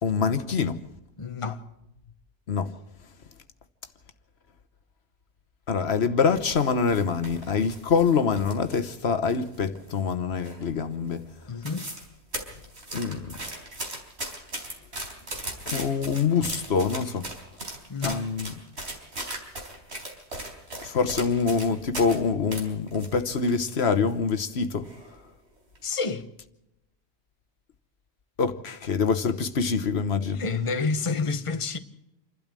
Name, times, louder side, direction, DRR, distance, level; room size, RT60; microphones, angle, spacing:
voice 1, 0.0-0.8 2.5-2.7 5.7-11.2 12.9-13.3 15.7-17.3 18.0-18.5 20.8-24.9 28.4-30.4, left 5 dB, 75° left, 1.4 m, -25 dB
voice 2, 1.2-1.6 11.5-11.9 17.9-18.2 25.8-26.3 30.2-31.8, left 4 dB, 30° left, 1.1 m, -29 dB
sound 1, 6.3-9.0 9.3-10.1 10.4-10.8 11.1-11.2 11.4-12.1 12.3-22.2 22.5-23.8 24.1-24.2 24.8-25.2 25.6-25.8, right 1 dB, 85° right, 4.5 m, -37 dB
28.5 x 12.5 x 7.5 m
omnidirectional pair, 1.1 m